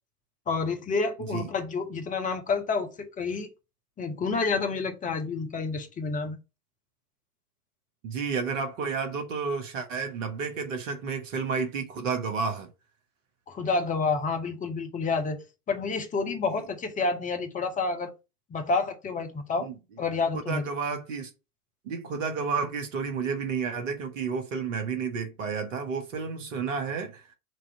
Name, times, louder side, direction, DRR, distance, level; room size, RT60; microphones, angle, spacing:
voice 1, 0.5-3.5 4.0-6.4 13.5-18.1 18.5-19.7 20.0-20.6, left 4 dB, 15° left, 1.0 m, -29 dB
voice 2, 8.0-12.7 19.6-19.8 20.3-21.3 21.8-27.3, right 5 dB, 55° right, 1.5 m, -31 dB
6.2 x 2.9 x 5.7 m
figure-of-eight pair, 95°, 46 cm